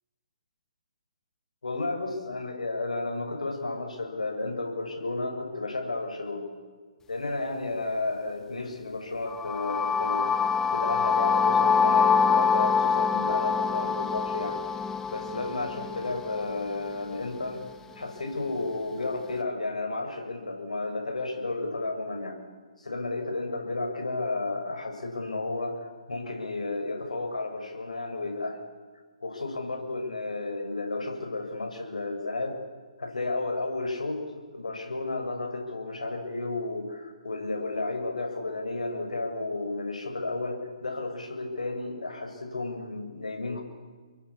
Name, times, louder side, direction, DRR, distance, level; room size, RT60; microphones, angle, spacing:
voice 1, 1.6-6.5 7.1-10.3 10.7-14.6 15.1-17.6 18.0-22.4 22.8-28.6 29.2-32.6 33.0-43.6, left 2 dB, 90° left, 3 dB, 7.2 m, -32 dB
sound 1, 9.3-17.2, left 5 dB, 10° left, 1.2 m, -25 dB
29.0 x 22.5 x 8.7 m, 1.5 s
hypercardioid pair, 145°, 4 cm